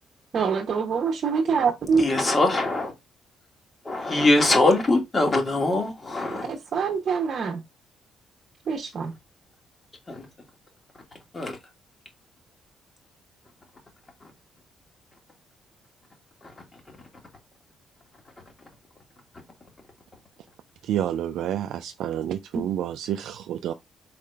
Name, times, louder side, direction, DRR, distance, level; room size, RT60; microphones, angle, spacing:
voice 1, 0.3-2.0 6.3-7.6 8.7-9.1 22.5-22.6, right 5 dB, 55° right, 0.8 m, -25 dB
voice 2, 2.0-2.9 3.9-6.5 10.1-10.3 11.3-11.6, left 2 dB, 30° left, 1.7 m, -22 dB
voice 3, 20.8-23.7, right 10 dB, 80° right, 0.3 m, -29 dB
4.2 x 3.7 x 3.3 m
cardioid pair, 90°, 0 cm